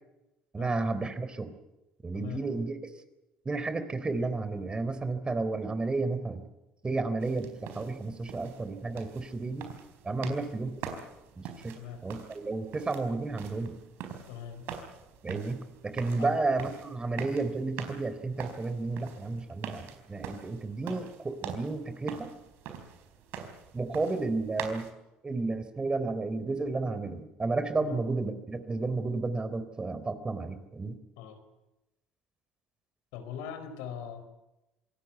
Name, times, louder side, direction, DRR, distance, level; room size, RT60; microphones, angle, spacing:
voice 1, 0.5-1.5 2.0-2.8 3.5-6.4 6.8-9.7 10.0-10.7 11.4-13.8 15.2-22.3 23.7-24.9 25.2-31.0, right 3 dB, 25° right, 11 dB, 3.8 m, -32 dB
voice 2, 2.1-2.5 10.2-10.4 11.8-12.0 14.3-14.7 16.2-16.4 27.8-28.0 31.2-31.4 33.1-34.2, left 8 dB, 80° left, 9 dB, 4.5 m, -41 dB
sound 1, 7.2-24.9, right 7 dB, 70° right, 4.4 m, -44 dB
26.0 x 18.0 x 8.2 m, 0.99 s
hypercardioid pair, 70°, 4 cm